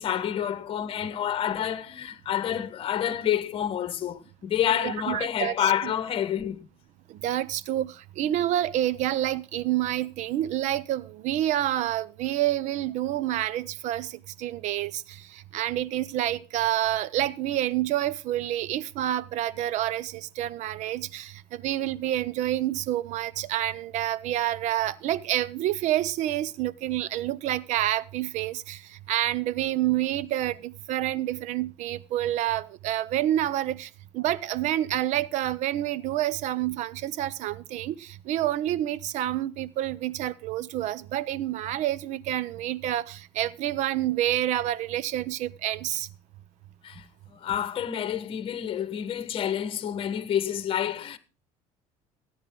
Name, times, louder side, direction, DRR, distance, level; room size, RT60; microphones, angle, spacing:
voice 1, 0.0-6.6 46.8-47.0 47.3-51.2, left 10 dB, 45° left, 1.1 m, -28 dB
voice 2, 4.8-5.7 7.1-46.1, right 13 dB, 65° right, 0.7 m, -28 dB
14.0 x 9.7 x 3.7 m
cardioid pair, 115°, 13 cm